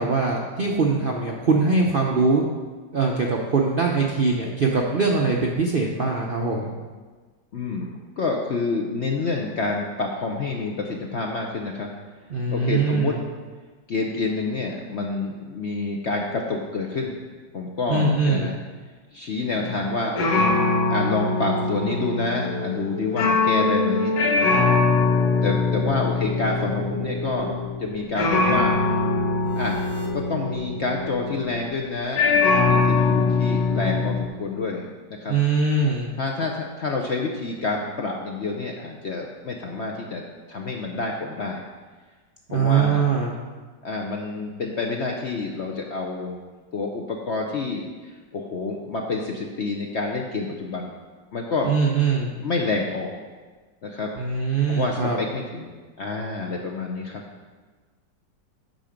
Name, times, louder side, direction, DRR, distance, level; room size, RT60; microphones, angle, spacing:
voice 1, 0.0-2.4 2.9-6.7 12.3-13.2 17.9-18.5 35.3-36.1 42.5-43.3 51.6-52.3 54.1-55.2, right 4 dB, 55° right, -1 dB, 0.6 m, -22 dB
voice 2, 7.5-11.9 12.5-13.2 13.9-17.2 17.5-18.6 19.1-20.6 20.9-24.5 25.4-28.8 29.6-29.8 30.1-35.4 36.2-40.2 40.5-41.6 42.5-43.1 43.8-46.4 46.7-47.9 48.3-50.9 51.3-51.7 52.4-53.2 53.8-54.1 54.7-55.7 56.0-57.2, left 3 dB, 60° left, 0 dB, 0.7 m, -28 dB
sound 1, 19.5-19.9 20.2-31.7 32.2-34.3, left 3 dB, 75° left, 1.6 m, -22 dB
sound 2, 22.2-31.4, left 4 dB, 25° left, 0.5 m, -36 dB
9.2 x 5.7 x 5.1 m, 1.4 s
omnidirectional pair, 1.9 m